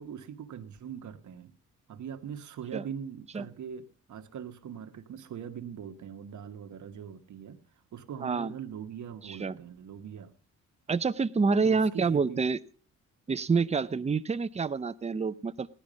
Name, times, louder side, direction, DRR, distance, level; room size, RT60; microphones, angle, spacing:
voice 1, 0.0-1.5 1.9-7.6 7.9-10.3 11.6-12.4, right 8 dB, 70° right, 7 dB, 1.4 m, -41 dB
voice 2, 8.2-8.5 9.2-9.6 10.9-12.6 13.3-15.7, right 4 dB, 20° right, 12 dB, 0.6 m, -27 dB
16.0 x 11.0 x 5.1 m, 0.42 s
cardioid pair, 95°, 31 cm